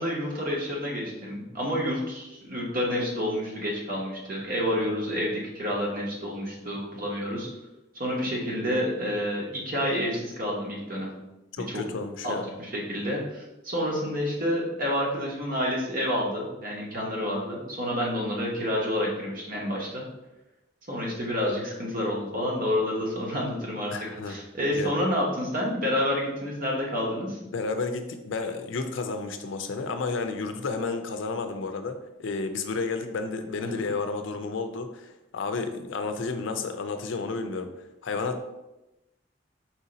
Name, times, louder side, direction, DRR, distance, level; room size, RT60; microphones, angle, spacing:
voice 1, 0.0-7.5 7.9-11.1 11.6-11.8 12.2-20.0 20.9-23.9 24.2-27.4 33.6-33.8, equal, 45° right, -2 dB, 1.1 m, -29 dB
voice 2, 11.6-12.5 23.9-24.4 24.7-24.9 27.4-37.7 38.0-38.4, left 4 dB, 75° left, 7 dB, 0.4 m, -31 dB
4.4 x 2.7 x 3.9 m, 0.98 s
head